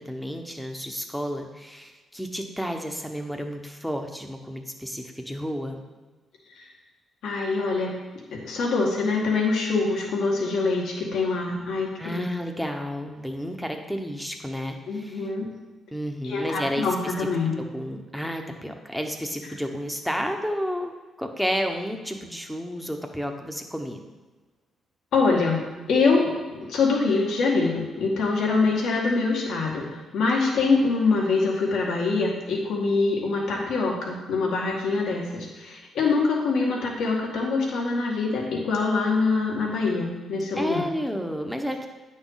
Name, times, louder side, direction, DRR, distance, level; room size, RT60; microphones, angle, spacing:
voice 1, 0.0-5.8 12.0-15.3 15.9-17.3 17.6-20.9 21.2-24.0 40.6-41.9, equal, ahead, 4 dB, 1.1 m, -31 dB
voice 2, 7.2-8.0 8.4-12.2 14.9-15.5 16.2-17.5 25.1-25.6 25.9-40.8, left 4 dB, 80° left, -2 dB, 2.0 m, -24 dB
9.5 x 6.3 x 4.0 m, 1.3 s
cardioid pair, 95°, 0 cm